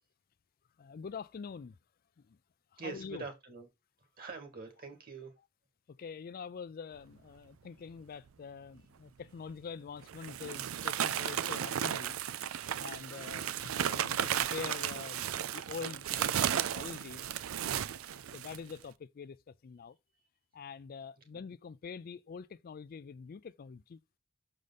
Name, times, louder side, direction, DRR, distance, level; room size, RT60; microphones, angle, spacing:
voice 1, 0.8-1.8 2.3-2.4 2.7-3.2 5.9-12.2 12.8-17.2 18.3-20.0 20.5-24.0, left 6 dB, 45° left, 0.4 m, -45 dB
voice 2, 2.8-3.7 4.2-5.3 21.3-21.4, right 4 dB, 45° right, 2.0 m, -44 dB
sound 1, 9.3-9.4 10.0-18.7, right 10 dB, 85° right, 0.4 m, -34 dB
6.5 x 5.0 x 4.0 m
head